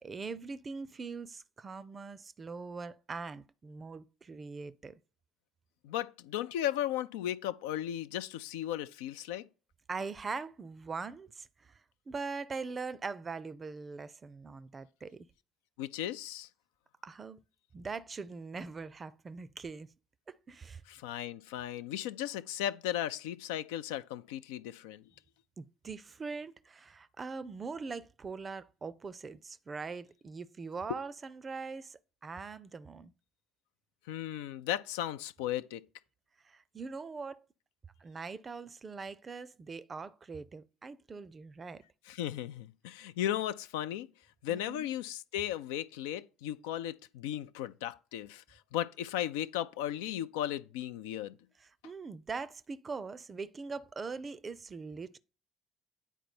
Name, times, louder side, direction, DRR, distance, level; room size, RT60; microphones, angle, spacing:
voice 1, 0.0-5.0 9.9-11.8 12.1-15.3 17.0-17.4 17.7-19.9 20.3-20.8 25.6-33.1 36.4-37.4 38.0-41.8 44.5-44.9 51.6-55.2, right 4 dB, 30° right, 0.5 m, -42 dB
voice 2, 5.8-9.4 15.8-16.5 20.9-25.0 34.1-35.8 42.1-44.1 44.4-51.4, left 12 dB, 70° left, 0.4 m, -36 dB
9.1 x 4.5 x 4.2 m
figure-of-eight pair, 50°, 0 cm